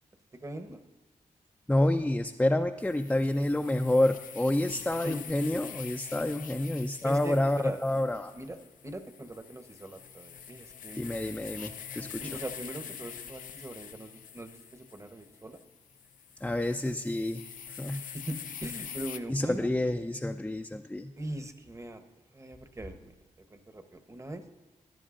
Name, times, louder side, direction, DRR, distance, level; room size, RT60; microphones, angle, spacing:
voice 1, 0.4-0.8 4.7-5.2 7.0-7.8 8.1-8.6 8.8-11.2 12.2-15.6 17.9-19.7 21.2-22.0 22.3-23.1 23.5-24.4, right 1 dB, 20° right, 7 dB, 1.0 m, -41 dB
voice 2, 1.7-8.3 11.0-12.3 16.4-17.4 17.8-18.0 19.3-21.1, left 1 dB, 10° left, 4 dB, 0.5 m, -28 dB
sound 1, 2.8-19.2, left 7 dB, 80° left, 0.5 m, -45 dB
15.5 x 10.5 x 2.5 m, 1.2 s
cardioid pair, 55°, 14 cm